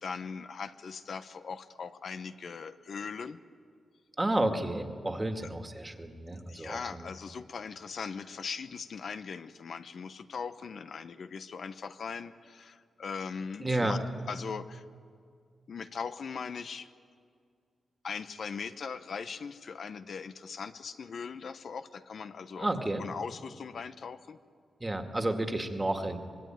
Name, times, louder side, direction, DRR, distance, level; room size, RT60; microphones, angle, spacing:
voice 1, 0.0-3.4 6.5-14.0 14.3-14.8 15.7-16.9 18.0-22.7 23.0-24.4, left 5 dB, 65° left, 10 dB, 0.9 m, -40 dB
voice 2, 4.2-7.1 13.6-14.0 22.6-23.0 24.8-26.2, right 1 dB, 20° right, 6 dB, 2.1 m, -31 dB
25.5 x 20.5 x 9.2 m, 2.2 s
wide cardioid pair, 105°, 0 cm